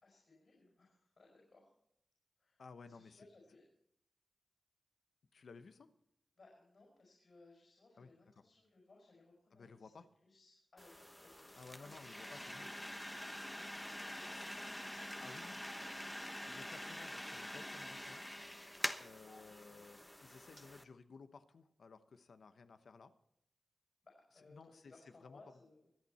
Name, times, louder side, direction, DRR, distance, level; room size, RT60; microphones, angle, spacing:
voice 1, 0.0-1.7 2.4-3.6 6.4-9.9 10.2-11.9 14.0-14.7 19.6-19.9 24.0-25.8, left 3 dB, 65° left, -1 dB, 5.6 m, -64 dB
voice 2, 2.6-3.2 5.3-5.9 8.0-8.1 9.5-10.1 11.6-12.7 14.3-14.6 15.2-15.7 16.5-18.2 19.0-23.1 24.5-25.4, left 4 dB, 80° left, 10 dB, 1.0 m, -56 dB
sound 1, 10.8-20.8, left 1 dB, 10° left, 1.1 m, -46 dB
24.5 x 8.4 x 4.3 m, 0.75 s
cardioid pair, 55°, 0 cm